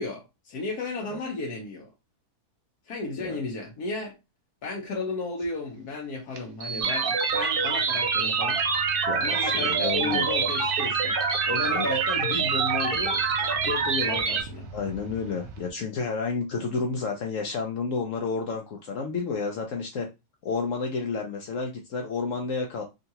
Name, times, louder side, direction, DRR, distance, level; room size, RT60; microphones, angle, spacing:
voice 1, 0.0-1.9 2.9-4.1 4.6-8.6 9.2-11.2 11.4-14.7, left 3 dB, 85° left, 1.4 m, -33 dB
sound 1, 5.4-5.5 6.3-15.7, right 3 dB, 80° right, 1.1 m, -43 dB
sound 2, 6.8-14.4, right 5 dB, 60° right, 0.6 m, -25 dB
voice 2, 9.1-10.2 11.6-11.9 14.7-20.1 20.4-22.8, left 4 dB, 65° left, 0.9 m, -30 dB
3.7 x 2.4 x 2.7 m
omnidirectional pair, 1.6 m